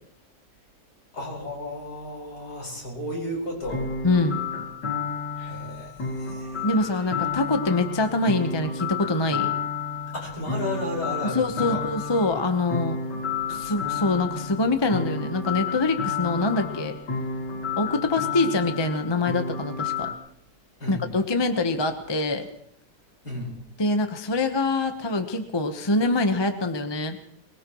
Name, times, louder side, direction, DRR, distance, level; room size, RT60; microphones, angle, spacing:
voice 1, 1.1-3.9 5.4-6.6 10.1-11.8 20.8-21.1 23.2-23.6, left 1 dB, 65° left, -2 dB, 5.5 m, -33 dB
sound 1, 3.6-20.1, left 5 dB, 85° left, 2.5 m, -31 dB
voice 2, 4.0-4.4 6.6-9.5 11.3-13.0 13.5-17.0 17.8-20.1 20.9-22.5 23.8-27.2, left 2 dB, 20° left, 6 dB, 0.9 m, -24 dB
22.5 x 20.5 x 3.1 m, 0.73 s
omnidirectional pair, 1.8 m